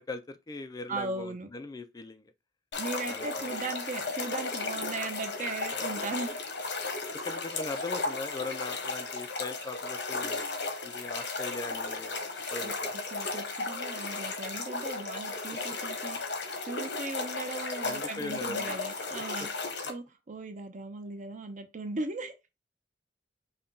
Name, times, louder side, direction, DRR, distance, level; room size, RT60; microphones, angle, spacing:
voice 1, 0.0-2.3 3.1-3.5 7.2-10.4 10.8-13.0 17.8-18.8, left 3 dB, 20° left, 0.3 m, -40 dB
voice 2, 0.9-1.5 2.8-6.5 12.6-16.2 16.6-19.5 19.9-22.3, right 3 dB, 45° right, 0.7 m, -38 dB
sound 1, 2.7-19.9, left 3 dB, 85° left, 1.1 m, -35 dB
5.7 x 2.2 x 3.7 m
head